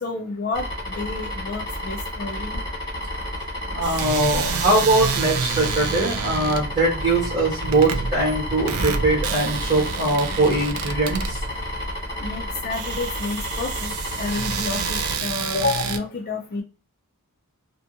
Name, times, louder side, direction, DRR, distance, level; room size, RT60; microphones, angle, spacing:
voice 1, 0.0-2.6 4.4-4.5 10.3-10.4 12.2-16.6, left 3 dB, 40° left, 2 dB, 0.4 m, -30 dB
sound 1, 0.5-15.2, left 1 dB, 20° left, 1.0 m, -31 dB
voice 2, 3.6-11.4, right 2 dB, 30° right, -3 dB, 1.0 m, -22 dB
sound 2, 3.8-16.0, right 5 dB, 70° right, 0.4 m, -29 dB
2.6 x 2.4 x 2.5 m, 0.34 s
head